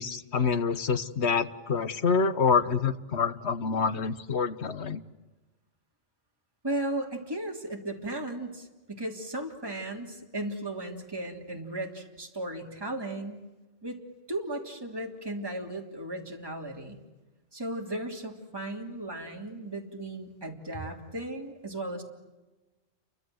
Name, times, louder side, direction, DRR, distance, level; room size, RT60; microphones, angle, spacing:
voice 1, 0.0-5.0, left 5 dB, 70° left, 12 dB, 1.4 m, -27 dB
voice 2, 6.6-13.5 13.8-14.0 14.3-17.0 17.5-22.0, right 1 dB, 20° right, 1 dB, 3.1 m, -36 dB
30.0 x 24.0 x 7.9 m, 1.1 s
omnidirectional pair, 1.2 m